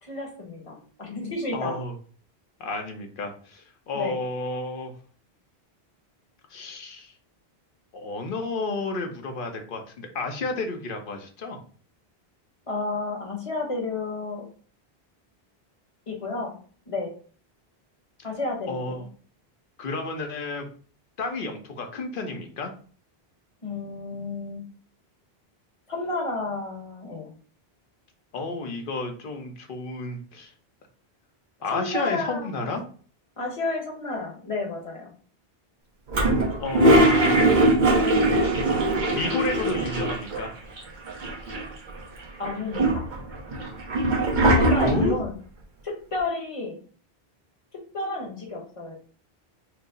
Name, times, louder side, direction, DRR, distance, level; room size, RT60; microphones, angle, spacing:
voice 1, 0.0-1.8 3.9-4.2 12.7-14.5 16.1-16.6 16.9-17.1 18.2-19.1 23.6-24.6 25.9-27.3 31.7-32.7 33.4-35.1 42.4-43.1 44.5-45.3 45.8-46.8 47.9-48.9, left 3 dB, 35° left, 0 dB, 1.0 m, -31 dB
voice 2, 1.5-1.9 2.6-4.9 6.5-7.1 7.9-11.6 18.7-19.0 19.8-20.6 21.2-22.7 28.3-30.5 31.6-32.8 36.6-37.6 39.1-40.5 44.8-45.2, left 3 dB, 60° left, 4 dB, 0.9 m, -31 dB
Toilet flush, 36.1-40.5 40.8-40.9 41.1-41.9 42.4-45.2, right 1 dB, 50° right, 0.9 m, -21 dB
4.6 x 2.0 x 3.8 m, 0.43 s
omnidirectional pair, 1.0 m